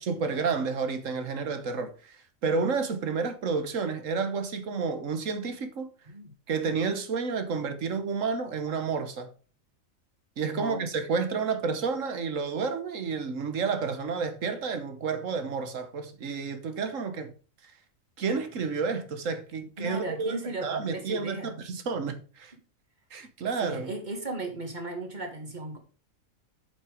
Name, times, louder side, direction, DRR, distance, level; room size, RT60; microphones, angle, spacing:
voice 1, 0.0-5.9 6.5-9.3 10.4-17.3 17.6-17.7 18.2-22.5 23.1-23.9, right 5 dB, 70° right, 1.5 m, -30 dB
voice 2, 10.5-11.1 19.8-21.6 23.6-25.8, right 2 dB, 35° right, 2.0 m, -36 dB
8.0 x 5.8 x 5.0 m
omnidirectional pair, 1.4 m